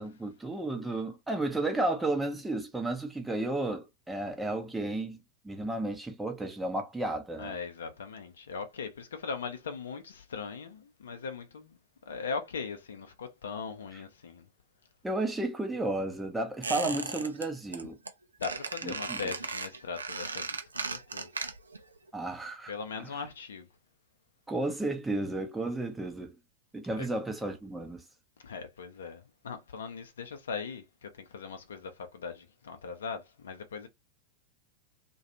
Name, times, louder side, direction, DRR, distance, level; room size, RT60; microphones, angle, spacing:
voice 1, 0.0-5.2 5.4-7.6 13.9-14.0 15.0-18.0 18.8-19.2 22.1-22.7 23.0-23.3 24.5-26.4 26.7-28.0, right 2 dB, 5° right, 0.6 m, -33 dB
voice 2, 7.4-11.8 12.1-14.5 18.4-20.6 20.9-21.3 22.7-23.7 27.0-27.1 28.4-33.9, left 5 dB, 65° left, 0.6 m, -39 dB
Squeak, 16.6-17.5 17.7-18.1 18.4-21.8 22.1-22.2, right 4 dB, 75° right, 0.4 m, -36 dB
2.3 x 2.3 x 2.8 m
figure-of-eight pair, 90°, 0 cm